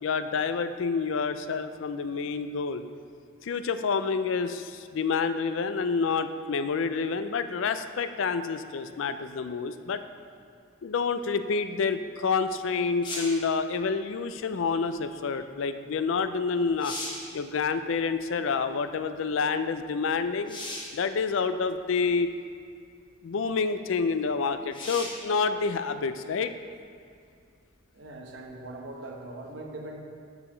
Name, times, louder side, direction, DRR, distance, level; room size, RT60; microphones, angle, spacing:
voice 1, 0.0-2.8 3.4-10.0 10.8-17.0 17.3-20.6 20.9-22.4 23.2-26.5, left 5 dB, 75° left, 10 dB, 0.4 m, -28 dB
sound 1, 13.0-13.5 16.1-16.2 16.6-17.3 20.5-21.0 22.0-22.1 24.7-25.3 28.9-29.0, left 2 dB, 25° left, 1.0 m, -37 dB
voice 2, 27.9-30.0, right 2 dB, 65° right, 1 dB, 1.0 m, -41 dB
6.8 x 4.8 x 6.4 m, 2.3 s
head